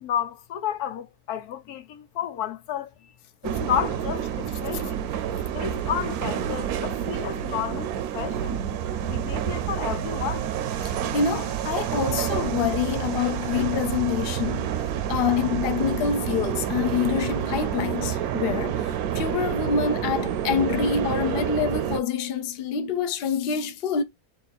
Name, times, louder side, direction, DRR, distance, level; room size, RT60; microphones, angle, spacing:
voice 1, 0.0-2.9 3.4-5.0 5.5-7.9 8.1-8.6 9.0-10.5, left 9 dB, 85° left, 1.3 m, -31 dB
sound 1, 3.4-22.0, right 10 dB, 75° right, 1.0 m, -28 dB
voice 2, 11.1-14.8 15.1-24.0, left 7 dB, 55° left, 0.6 m, -26 dB
4.0 x 2.4 x 4.1 m
omnidirectional pair, 1.6 m